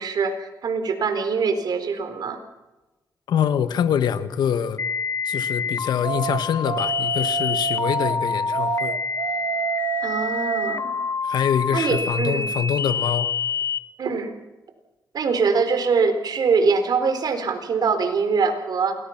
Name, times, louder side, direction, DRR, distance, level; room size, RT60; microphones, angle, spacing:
voice 1, 0.0-2.4 10.0-11.0 11.7-12.4 14.0-14.4 15.1-19.0, right 5 dB, 70° right, 8 dB, 4.2 m, -23 dB
voice 2, 3.3-4.8 5.2-9.0 11.2-13.3, left 8 dB, 85° left, 11 dB, 1.5 m, -24 dB
sound 1, 4.8-13.8, left 5 dB, 45° left, 1.7 m, -27 dB
sound 2, 6.0-8.2 8.5-10.8, right 12 dB, 85° right, 1.1 m, -29 dB
28.0 x 20.5 x 6.0 m, 1.1 s
cardioid pair, 65°, 7 cm